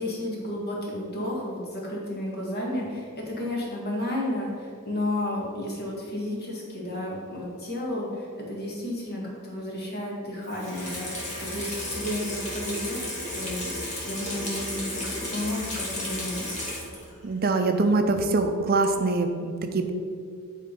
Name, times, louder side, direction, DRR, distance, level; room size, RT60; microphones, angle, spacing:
voice 1, 0.0-13.0 13.3-13.7 14.1-16.5, left 1 dB, 50° left, -3 dB, 2.0 m, -32 dB
Water tap faucet / Sink (filling or washing), 10.4-17.2 17.5-17.6, left 1 dB, 30° left, 2.0 m, -33 dB
voice 2, 17.2-19.9, right 3 dB, 40° right, 6 dB, 0.5 m, -24 dB
9.9 x 3.7 x 5.3 m, 2.2 s
head